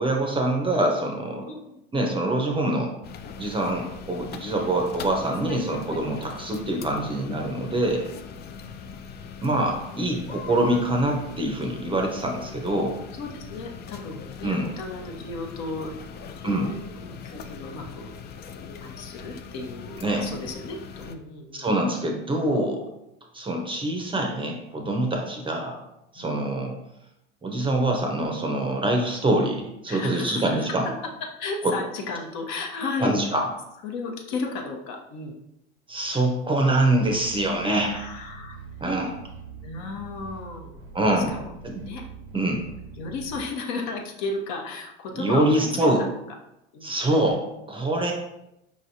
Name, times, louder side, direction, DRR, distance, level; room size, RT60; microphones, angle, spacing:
voice 1, 0.0-1.5 1.9-2.9 3.4-8.1 9.4-13.0 14.4-14.7 16.4-16.7 20.0-20.3 21.5-22.8 23.3-25.8 26.1-26.7 27.4-30.9 31.6-31.7 33.0-33.5 35.9-37.9 38.8-39.2 40.9-41.4 41.6-41.8 42.3-42.6 45.2-46.0 46.8-48.1, right 1 dB, 15° right, 2 dB, 0.6 m, -25 dB
voice 2, 1.5-1.8 7.2-7.4 13.1-18.1 18.7-21.7 26.2-26.3 29.9-30.8 31.4-33.3 33.8-35.3 37.7-38.6 39.6-40.7 41.2-41.5 41.8-42.0 42.4-42.5 43.0-45.9 46.7-46.9, left 3 dB, 55° left, 1 dB, 0.9 m, -34 dB
sound 1, 3.0-21.2, left 6 dB, 30° left, 0.4 m, -41 dB
sound 2, 37.0-43.4, right 5 dB, 85° right, 0.8 m, -43 dB
4.9 x 3.1 x 2.7 m, 0.85 s
hypercardioid pair, 95°, 33 cm